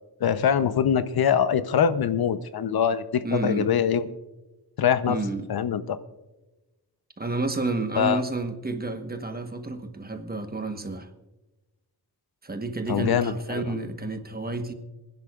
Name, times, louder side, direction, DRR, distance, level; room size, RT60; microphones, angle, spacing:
voice 1, 0.2-4.2 4.8-5.2 5.5-6.0 8.0-8.2 12.9-13.6, left 8 dB, 70° left, 13 dB, 0.8 m, -23 dB
voice 2, 3.2-3.7 5.1-5.5 7.2-11.1 12.4-14.7, right 2 dB, 25° right, 7 dB, 1.1 m, -30 dB
25.5 x 10.5 x 2.4 m, 1.1 s
wide cardioid pair, 115°, 38 cm